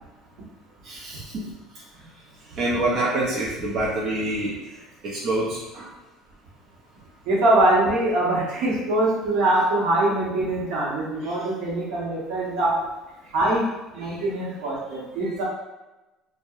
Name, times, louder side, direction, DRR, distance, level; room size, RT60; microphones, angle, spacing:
voice 1, 0.8-1.5 2.5-4.6 5.0-5.9 11.2-11.4 13.2-13.3 14.0-14.3, right 1 dB, 40° right, -6 dB, 0.5 m, -27 dB
voice 2, 7.3-12.7 13.3-13.7 13.9-15.4, right 1 dB, 70° right, -5 dB, 0.8 m, -23 dB
2.7 x 2.0 x 2.3 m, 1.0 s
cardioid pair, 150°, 0 cm